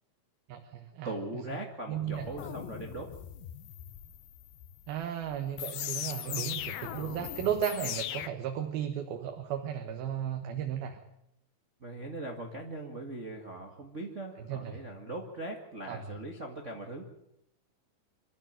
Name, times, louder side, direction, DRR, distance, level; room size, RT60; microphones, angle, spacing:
voice 1, 0.5-1.1 1.9-2.3 4.9-11.0 14.4-14.8 15.9-16.1, right 9 dB, 80° right, 5 dB, 3.3 m, -35 dB
voice 2, 1.0-3.1 11.8-17.1, right 2 dB, 30° right, 2 dB, 1.5 m, -40 dB
sound 1, 2.1-8.3, left 12 dB, 80° left, 2.9 m, -39 dB
26.0 x 13.5 x 9.1 m, 0.81 s
omnidirectional pair, 4.3 m